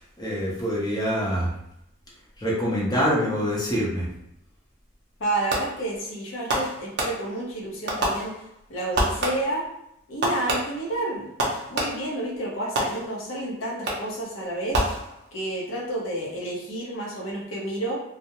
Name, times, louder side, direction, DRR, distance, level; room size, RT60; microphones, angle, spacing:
voice 1, 0.2-1.5 2.4-4.1, equal, 20° left, -5 dB, 0.6 m, -25 dB
voice 2, 5.2-8.3 8.7-9.6 10.1-11.3 11.7-14.8 15.3-18.0, right 1 dB, 65° left, -3 dB, 0.7 m, -30 dB
Fireworks, 5.5-5.9 6.5-7.5 7.9-8.6 8.9-9.7 10.2-12.2 12.8-13.4 13.9-14.3 14.7-15.5, right 1 dB, 50° right, 0.5 m, -28 dB
2.3 x 2.0 x 2.8 m, 0.80 s
head